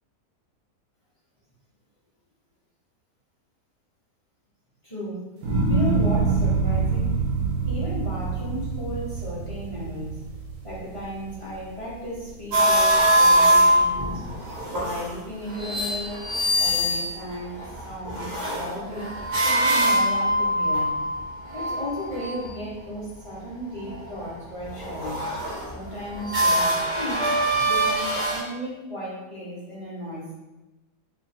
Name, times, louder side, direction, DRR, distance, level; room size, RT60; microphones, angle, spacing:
voice 1, 4.8-5.4 5.7-7.1 7.7-10.2 10.6-14.2 14.7-16.2 16.5-17.6 17.8-19.1 19.4-21.0 21.5-25.3 25.7-27.3 27.6-30.3, equal, 25° left, -9 dB, 0.9 m, -34 dB
sound 1, 5.4-11.8 12.2-12.8, right 4 dB, 80° right, 1.3 m, -25 dB
sound 2, 12.5-15.1 15.4-22.5 23.8-24.3 24.6-28.4, right 1 dB, 30° right, 1.1 m, -23 dB
3.0 x 2.5 x 4.2 m, 1.1 s
omnidirectional pair, 1.7 m